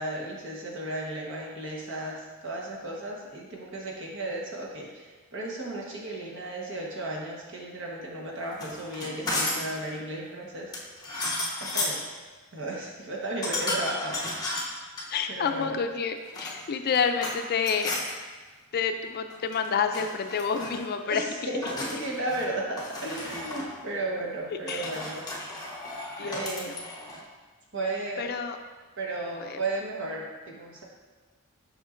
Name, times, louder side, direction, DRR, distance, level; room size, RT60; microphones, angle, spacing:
voice 1, 0.0-10.7 11.6-12.1 12.5-14.2 15.3-15.8 21.0-25.2 26.2-26.8 27.7-28.3 29.0-30.8, right 2 dB, 65° right, -2 dB, 1.2 m, -34 dB
sound 1, 8.5-9.7 10.7-12.0 13.4-15.1 16.2-17.4 17.6-18.1 19.3-19.7 19.9-20.8 21.6-22.5 22.8-23.7 24.7-27.2, left 2 dB, 20° left, 1.0 m, -33 dB
voice 2, 15.1-17.9 18.7-21.3 24.7-25.0 26.2-26.8 28.2-28.6 29.4-29.6, left 6 dB, 50° left, 7 dB, 0.4 m, -29 dB
7.1 x 5.5 x 2.5 m, 1.3 s
head